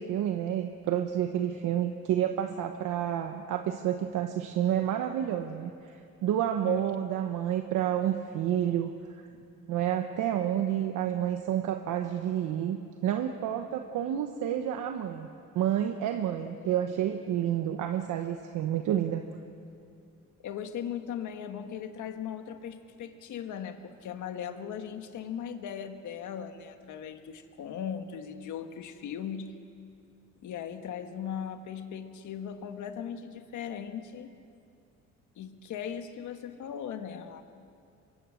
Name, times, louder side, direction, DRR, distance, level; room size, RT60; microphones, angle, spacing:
voice 1, 0.0-8.9 9.7-15.3 15.5-19.2, right 10 dB, 85° right, 6 dB, 1.1 m, -29 dB
voice 2, 16.5-16.9 20.4-29.5 30.4-34.3 35.4-37.4, left 8 dB, 80° left, 7 dB, 1.7 m, -38 dB
24.5 x 23.0 x 6.4 m, 2.5 s
cardioid pair, 90°, 30 cm